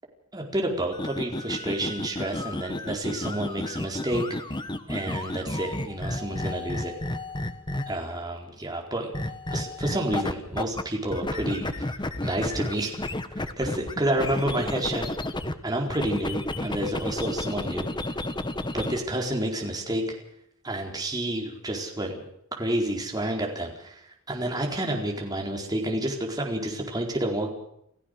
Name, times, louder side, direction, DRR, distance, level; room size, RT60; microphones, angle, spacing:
voice 1, 0.3-4.2 4.9-6.9 7.9-9.2 9.5-11.9 12.2-13.0 13.6-15.1 15.6-17.9 18.7-20.0 20.6-22.2 22.6-27.5, right 1 dB, 20° right, 1 dB, 4.5 m, -29 dB
sound 1, 0.9-8.1 9.1-10.8 11.1-15.5 15.9-19.0, left 1 dB, 20° left, 1.3 m, -32 dB
29.5 x 15.0 x 6.7 m, 0.74 s
head